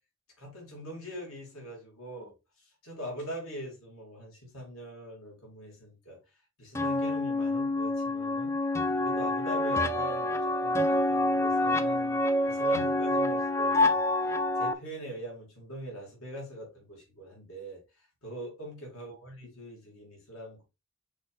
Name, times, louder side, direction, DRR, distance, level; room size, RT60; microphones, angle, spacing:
voice 1, 0.4-6.2 6.6-8.6 9.0-14.1 14.6-17.8 18.2-20.6, equal, 90° left, 3.1 m, -43 dB
sound 1, 6.8-14.7, left 1 dB, 15° left, 0.5 m, -27 dB
6.6 x 4.5 x 3.5 m
head